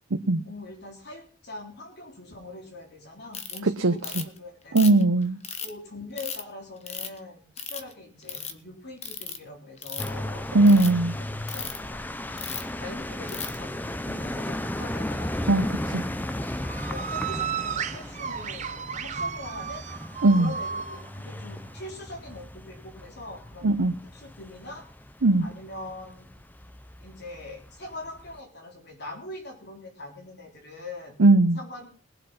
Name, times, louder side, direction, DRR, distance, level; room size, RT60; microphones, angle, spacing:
voice 1, 0.5-5.1 5.6-7.4 7.7-10.9 11.5-12.0 12.8-15.5 16.9-19.9 20.4-23.7 24.1-24.9 25.4-26.4 27.0-31.2 31.6-31.9, left 2 dB, 55° left, 3.7 m, -42 dB
Ratchet pawl, 3.3-3.6 4.0-4.4 4.8-5.7 6.2-6.4 6.9-7.2 7.6-7.9 8.2-8.5 9.0-9.4 9.8-10.2 10.6-10.9 11.5-11.8 12.4-12.7 13.3-13.6, left 7 dB, 30° left, 1.2 m, -35 dB
voice 2, 4.7-5.4 10.5-11.2 15.5-16.0 20.2-20.5 23.6-23.9 25.2-25.4 31.2-31.6, right 2 dB, 80° right, 0.8 m, -19 dB
sound 1, 10.0-28.4, left 1 dB, 10° left, 0.5 m, -36 dB
sound 2, 15.3-22.4, right 7 dB, 35° right, 0.7 m, -35 dB
21.0 x 7.8 x 5.6 m
head